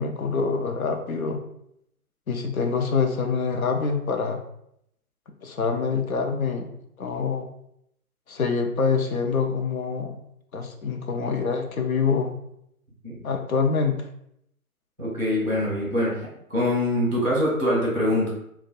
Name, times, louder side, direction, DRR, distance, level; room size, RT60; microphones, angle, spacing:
voice 1, 0.0-1.4 2.3-4.4 5.4-7.5 8.3-10.2 10.5-12.3 13.2-14.1, left 5 dB, 70° left, 4 dB, 0.6 m, -25 dB
voice 2, 15.0-16.2 16.5-18.3, left 1 dB, 5° left, -6 dB, 0.6 m, -24 dB
2.5 x 2.2 x 3.9 m, 0.75 s
figure-of-eight pair, 140°, 44 cm